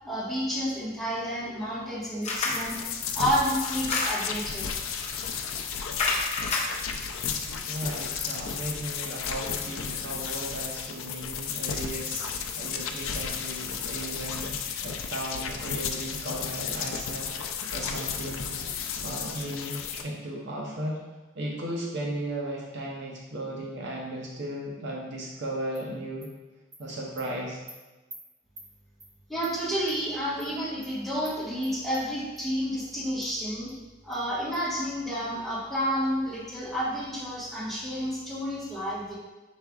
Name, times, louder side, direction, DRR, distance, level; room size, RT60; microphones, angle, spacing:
voice 1, 0.0-2.8 3.1-4.7 29.3-33.7 34.0-39.1, equal, ahead, -10 dB, 1.3 m, -30 dB
sound 1, 2.2-2.7 3.6-4.4 5.0-5.2 6.0-7.1, left 3 dB, 30° left, 0.7 m, -29 dB
sound 2, 2.3-20.0, left 6 dB, 75° left, 0.4 m, -33 dB
voice 2, 7.7-12.2 12.6-18.6 19.0-21.0 21.4-26.3 26.8-27.6, right 1 dB, 55° right, -2 dB, 0.7 m, -36 dB
Animal, 25.7-25.8 26.2-26.3 26.7-26.8 27.2-27.3 27.7-27.8 28.1-28.2 28.6-28.7 29.0-29.1 29.4-29.5 29.9-30.0 30.4-30.5 30.8-30.9 31.2-31.4 31.6-32.0 32.4-32.5 32.8-32.9 33.2-33.3 33.7-33.8 34.1-34.2 34.5-34.6, right 2 dB, 15° right, 0.6 m, -47 dB
4.9 x 4.6 x 2.3 m, 1.2 s
head